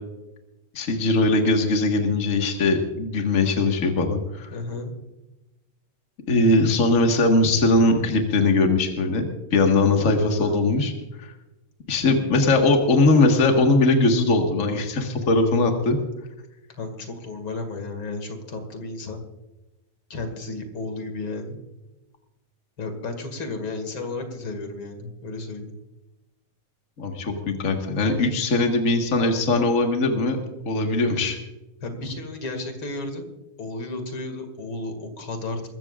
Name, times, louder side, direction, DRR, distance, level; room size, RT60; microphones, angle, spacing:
voice 1, 0.7-4.5 6.3-10.9 11.2-11.3 11.9-16.0 27.0-30.4 30.6-31.4, left 2 dB, 65° left, 3 dB, 0.7 m, -20 dB
voice 2, 4.5-4.9 9.9-10.6 16.7-19.3 20.1-21.6 22.8-25.7 31.8-33.3 33.6-35.7, left 2 dB, 40° left, 6 dB, 2.5 m, -33 dB
21.5 x 15.5 x 2.5 m, 1.0 s
omnidirectional pair, 4.2 m